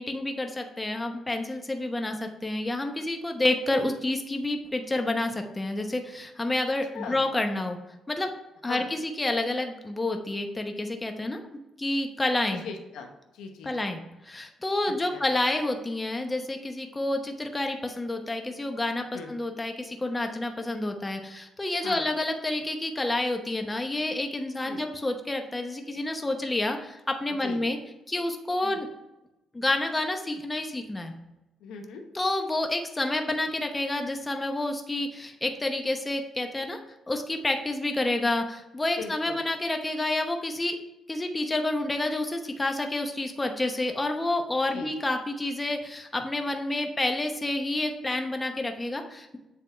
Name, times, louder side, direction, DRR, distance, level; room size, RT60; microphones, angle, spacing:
voice 1, 0.0-7.8 8.1-8.3 8.6-11.4 11.8-12.6 13.6-27.8 28.1-28.9 29.5-31.1 32.1-36.8 37.1-40.8 41.1-49.4, left 2 dB, 20° left, 5 dB, 0.9 m, -29 dB
voice 2, 12.5-13.9 15.1-15.2 19.1-19.3 21.8-22.1 24.6-24.8 27.4-27.6 28.6-28.8 31.6-32.0 39.0-39.4 44.7-44.9, left 5 dB, 85° left, 4 dB, 0.9 m, -39 dB
7.7 x 3.5 x 4.4 m, 0.96 s
cardioid pair, 90°, 0 cm